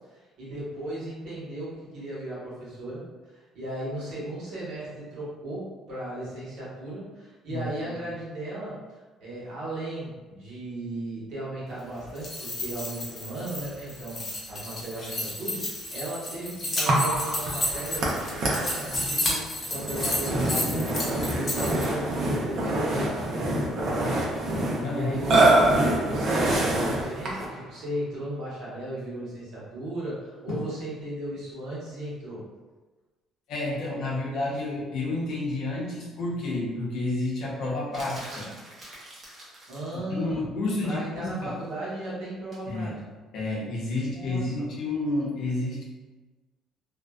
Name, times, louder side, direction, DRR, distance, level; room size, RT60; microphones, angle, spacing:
voice 1, 0.1-3.0 3.3-8.8 9.2-24.2 24.6-25.6 26.0-32.4 39.7-40.4 40.8-42.9 44.1-44.7, right 1 dB, 70° right, -7 dB, 1.1 m, -36 dB
sound 1, 12.0-21.8, left 1 dB, 30° left, 0.7 m, -32 dB
Burping eructation, 16.9-27.6, right 1 dB, 55° right, 0.6 m, -25 dB
voice 2, 24.8-25.3 30.5-30.6 33.5-38.5 40.1-41.5 42.7-42.9 43.3-45.8, left 2 dB, 65° left, -4 dB, 0.7 m, -30 dB
sound 2, 37.9-40.0 42.5-42.7, right 1 dB, 35° right, 0.8 m, -44 dB
2.5 x 2.1 x 2.2 m, 1.3 s
cardioid pair, 120°, 0 cm